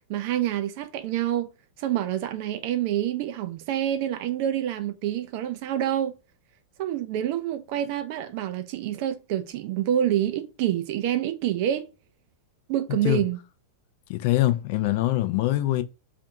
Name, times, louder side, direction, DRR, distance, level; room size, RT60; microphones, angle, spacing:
voice 1, 0.1-1.5 1.8-6.1 6.8-11.9 12.7-13.4, right 11 dB, 45° right, 0.4 m, -27 dB
voice 2, 14.1-15.8, left 16 dB, 50° left, 0.4 m, -23 dB
2.5 x 2.5 x 3.9 m
figure-of-eight pair, 90°, 0 cm